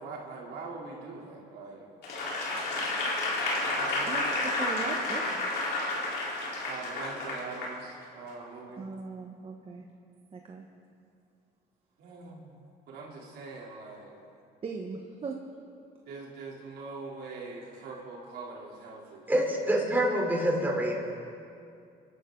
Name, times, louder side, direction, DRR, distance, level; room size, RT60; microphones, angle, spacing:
voice 1, 0.0-1.9 3.6-4.5 5.8-8.8 12.0-12.6 12.9-14.2 16.0-19.2, right 3 dB, 75° right, -3 dB, 3.4 m, -43 dB
Applause / Crowd, 2.0-7.8 8.3-8.4, left 2 dB, 75° left, 3.9 m, -31 dB
voice 2, 4.1-5.5 8.8-9.8 10.3-10.7 14.6-15.4, right 4 dB, 35° right, 1 dB, 1.3 m, -39 dB
voice 3, 19.3-21.0, right 1 dB, 10° right, -2 dB, 3.5 m, -26 dB
28.0 x 12.5 x 3.9 m, 2.4 s
cardioid pair, 110°, 17 cm